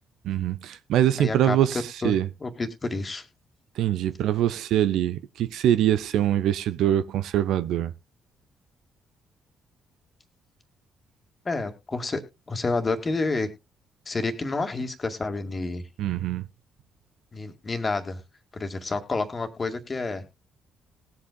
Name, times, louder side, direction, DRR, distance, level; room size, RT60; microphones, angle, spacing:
voice 1, 0.2-2.3 3.8-7.9 16.0-16.4, right 11 dB, 65° right, 0.6 m, -24 dB
voice 2, 1.2-1.6 2.0-2.1 2.4-3.2 11.5-13.5 14.1-15.8 17.3-18.2 18.5-20.2, left 3 dB, 30° left, 2.0 m, -29 dB
19.5 x 8.2 x 2.3 m
figure-of-eight pair, 45°, 0 cm